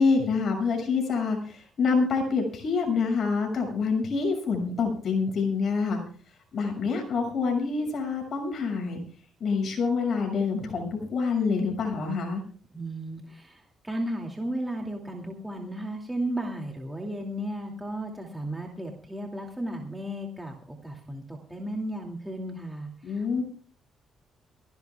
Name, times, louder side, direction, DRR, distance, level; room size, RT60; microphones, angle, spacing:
voice 1, 0.0-6.0 6.5-9.0 9.4-12.4 23.0-23.4, left 4 dB, 55° left, 3 dB, 6.6 m, -26 dB
voice 2, 12.7-23.4, right 1 dB, 10° right, 1 dB, 2.5 m, -34 dB
23.0 x 17.0 x 2.4 m, 0.42 s
cardioid pair, 90°, 0 cm